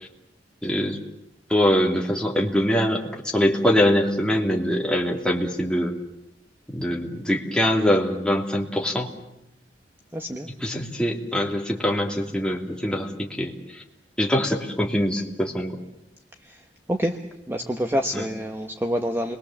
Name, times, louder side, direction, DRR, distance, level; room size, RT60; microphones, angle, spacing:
voice 1, 0.6-1.0 1.5-3.0 3.3-6.0 6.7-9.1 10.6-13.5 14.2-15.8 18.1-18.2, equal, 5° left, 0 dB, 2.8 m, -23 dB
voice 2, 10.1-10.5 16.4-17.2 17.5-19.4, equal, 15° right, 5 dB, 1.1 m, -27 dB
30.0 x 22.0 x 7.3 m, 0.83 s
head